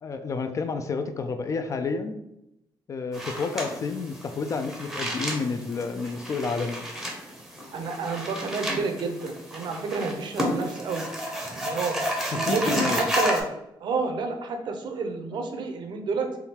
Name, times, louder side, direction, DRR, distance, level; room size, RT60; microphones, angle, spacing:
voice 1, 0.0-2.2 2.9-6.9 12.3-13.0, left 4 dB, 40° left, 8 dB, 0.3 m, -30 dB
sound 1, 3.1-13.4, equal, 5° right, 0.7 m, -32 dB
voice 2, 7.7-11.1 11.5-12.0 12.3-13.5 13.8-16.4, right 4 dB, 60° right, 5 dB, 0.6 m, -29 dB
3.5 x 2.3 x 4.2 m, 0.86 s
cardioid pair, 130°, 9 cm